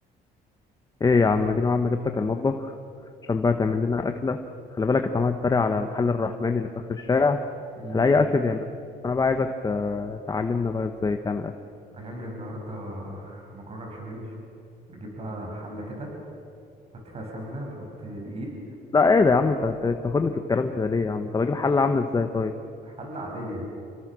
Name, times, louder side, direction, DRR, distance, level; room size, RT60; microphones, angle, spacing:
voice 1, 1.0-2.7 3.3-4.4 4.8-7.4 7.9-8.7 9.0-11.5 18.9-22.5, left 4 dB, 20° left, 6 dB, 1.2 m, -23 dB
voice 2, 11.9-14.4 14.9-16.1 17.0-18.5 22.8-23.6, right 1 dB, 35° right, 0 dB, 7.1 m, -37 dB
28.5 x 24.5 x 6.3 m, 2.6 s
cardioid pair, 110°, 17 cm